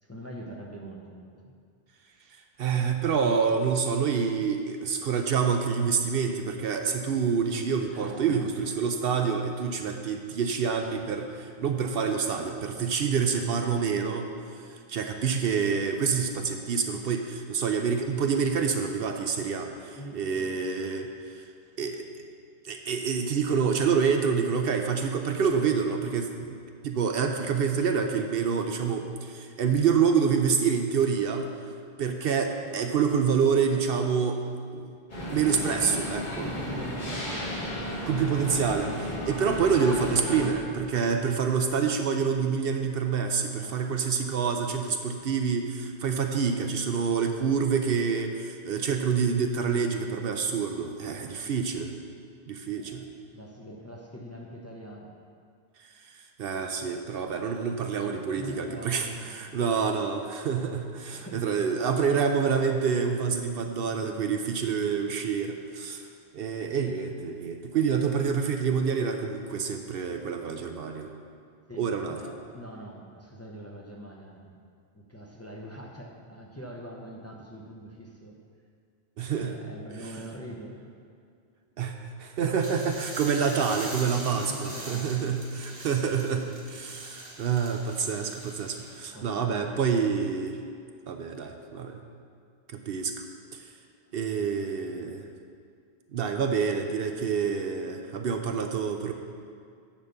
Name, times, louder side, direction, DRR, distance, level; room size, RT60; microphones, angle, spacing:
voice 1, 0.0-1.5 7.9-8.4 19.9-20.6 33.7-33.9 36.2-37.5 37.9-38.1 43.5-44.0 52.8-53.0 53.3-55.2 58.3-59.5 61.0-61.7 63.6-64.2 71.7-74.6 74.9-78.4 79.4-80.9 84.2-85.8 88.8-88.9 89.1-89.8, equal, 15° left, -1 dB, 0.7 m, -43 dB
voice 2, 2.6-14.3 14.7-21.4 21.8-22.0 22.6-26.6 26.8-31.5 32.0-34.4 34.7-34.9 35.3-36.4 38.1-51.9 52.5-53.0 56.0-56.1 56.4-66.0 66.3-71.1 71.8-72.4 79.2-79.6 81.8-90.6 91.1-92.0 92.7-93.2 93.5-93.7 94.1-95.3 96.1-99.1, right 6 dB, 65° right, 5 dB, 0.8 m, -27 dB
sound 1, 35.1-40.5, equal, 45° left, 1.8 m, -34 dB
sound 2, 82.5-89.0, right 1 dB, 40° right, 1.5 m, -42 dB
10.0 x 4.2 x 6.6 m, 2.2 s
omnidirectional pair, 1.1 m